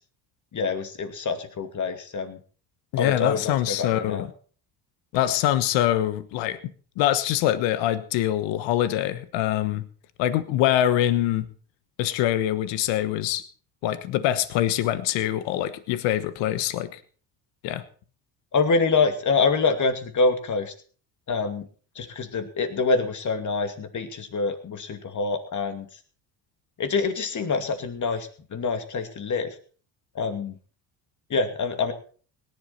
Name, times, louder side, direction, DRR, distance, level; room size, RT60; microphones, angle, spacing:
voice 1, 0.5-2.4 2.9-4.3 18.5-20.7 21.3-21.7 22.0-25.9 26.8-29.5 30.1-30.6 31.3-31.9, left 4 dB, 40° left, 8 dB, 2.5 m, -26 dB
voice 2, 2.9-4.3 5.1-6.6 7.0-9.9 10.2-11.4 12.0-13.4 13.8-17.0 17.6-17.8, left 12 dB, 80° left, 13 dB, 1.3 m, -24 dB
18.0 x 11.0 x 4.3 m, 0.42 s
supercardioid pair, 85°, 44 cm